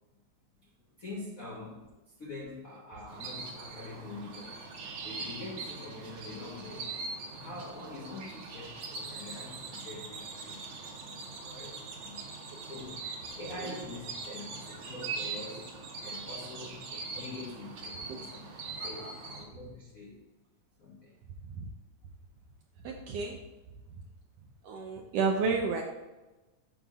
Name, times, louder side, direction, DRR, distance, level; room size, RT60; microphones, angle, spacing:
voice 1, 1.0-4.7 5.0-6.9 7.3-12.2 12.6-13.1 13.4-15.8 16.0-20.2 20.8-21.2, left 2 dB, 85° left, -4 dB, 0.7 m, -45 dB
sound 1, 3.1-19.4, right 4 dB, 55° right, 1.8 m, -42 dB
voice 2, 18.8-19.1 21.4-21.7 22.8-23.4 24.6-25.8, right 4 dB, 80° right, 2 dB, 1.4 m, -31 dB
7.0 x 5.4 x 3.6 m, 1.1 s
omnidirectional pair, 3.4 m